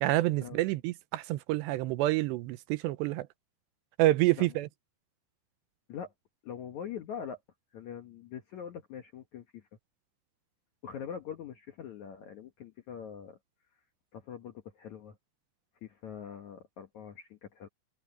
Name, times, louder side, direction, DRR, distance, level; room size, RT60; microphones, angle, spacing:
voice 1, 0.0-3.3 4.0-4.7, right 17 dB, 85° right, 2.8 m, -28 dB
voice 2, 6.4-7.4 7.7-9.6 10.8-13.4 14.1-15.2 15.8-17.7, left 8 dB, 65° left, 1.9 m, -43 dB
omnidirectional pair, 5.1 m